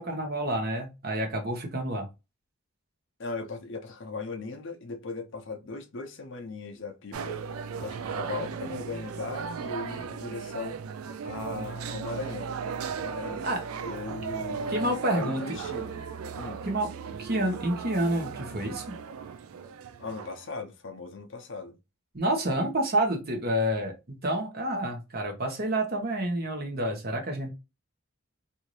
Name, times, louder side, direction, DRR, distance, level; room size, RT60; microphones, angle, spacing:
voice 1, 0.0-2.1 13.4-13.6 14.7-15.4 16.6-16.9 17.2-18.9 22.1-27.5, right 1 dB, 45° right, 0.9 m, -29 dB
voice 2, 3.2-7.4 7.8-10.8 11.2-12.6 13.0-13.5 13.8-15.9 16.3-16.6 20.0-21.8, left 3 dB, 55° left, 0.6 m, -38 dB
sound 1, 7.1-20.5, right 6 dB, 85° right, 0.4 m, -36 dB
2.7 x 2.5 x 3.0 m
head